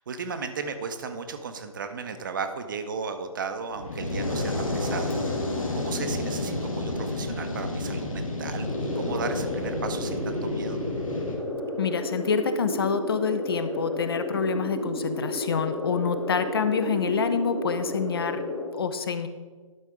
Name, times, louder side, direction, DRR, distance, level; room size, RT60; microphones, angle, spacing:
voice 1, 0.0-5.4 5.7-10.8, right 5 dB, 35° right, 8 dB, 0.7 m, -35 dB
Fire, 3.7-11.4, left 2 dB, 70° left, 1.9 m, -30 dB
sound 1, 8.6-18.6, left 1 dB, 5° left, 0.8 m, -32 dB
voice 2, 11.8-18.4 18.7-19.3, left 6 dB, 45° left, 10 dB, 0.6 m, -27 dB
11.5 x 4.4 x 4.9 m, 1.4 s
figure-of-eight pair, 145°, 18 cm